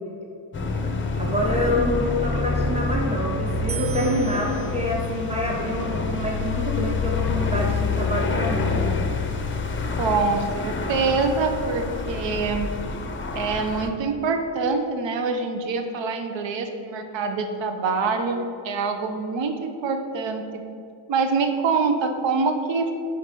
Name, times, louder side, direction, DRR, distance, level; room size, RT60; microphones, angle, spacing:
sound 1, 0.5-13.9, left 3 dB, 25° left, 0.6 m, -27 dB
voice 1, 1.2-8.8, left 1 dB, 15° right, -2 dB, 1.2 m, -26 dB
sound 2, 3.7-6.9, right 7 dB, 30° right, 0.4 m, -41 dB
voice 2, 9.9-12.7 13.3-20.6 21.1-22.9, right 4 dB, 65° right, 6 dB, 0.8 m, -25 dB
5.8 x 5.2 x 6.7 m, 2.5 s
wide cardioid pair, 165°, 47 cm